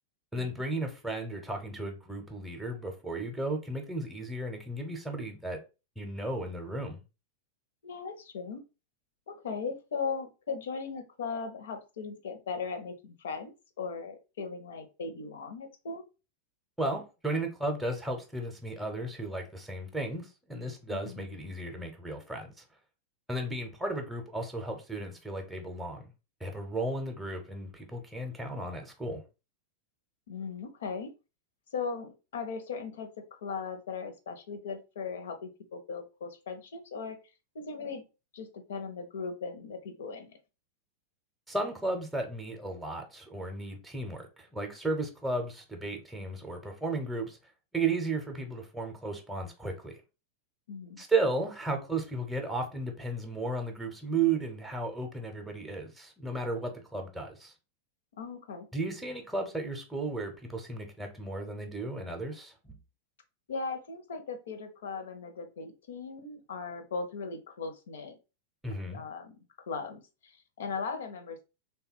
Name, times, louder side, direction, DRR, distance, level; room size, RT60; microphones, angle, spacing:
voice 1, 0.3-5.6 6.0-7.0 16.8-22.6 23.3-26.1 26.4-29.2 41.5-47.4 47.7-50.0 51.0-57.5 58.7-62.7 68.6-69.0, right 2 dB, ahead, 0.8 m, -34 dB
voice 2, 7.8-8.6 9.3-16.0 20.9-21.2 30.3-31.1 31.7-37.2 37.5-38.0 38.3-40.4 50.7-51.0 58.2-58.7 63.5-68.1 68.9-69.3 69.7-71.4, left 5 dB, 60° left, 0.8 m, -38 dB
3.4 x 2.3 x 4.4 m
figure-of-eight pair, 90°, 0 cm